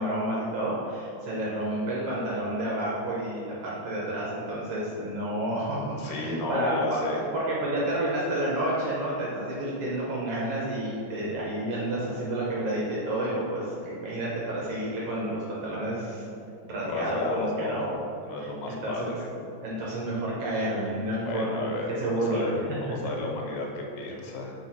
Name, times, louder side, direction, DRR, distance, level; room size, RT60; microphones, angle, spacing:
voice 1, 0.0-7.0 7.3-16.3 16.6-17.9 18.4-19.1 19.6-21.7 22.0-22.5, right 1 dB, 70° right, -5 dB, 1.4 m, -30 dB
voice 2, 6.0-7.2 16.8-17.9 18.3-19.1 21.2-24.5, left 2 dB, 80° left, 0 dB, 2.4 m, -33 dB
4.6 x 4.1 x 5.6 m, 2.6 s
omnidirectional pair, 3.7 m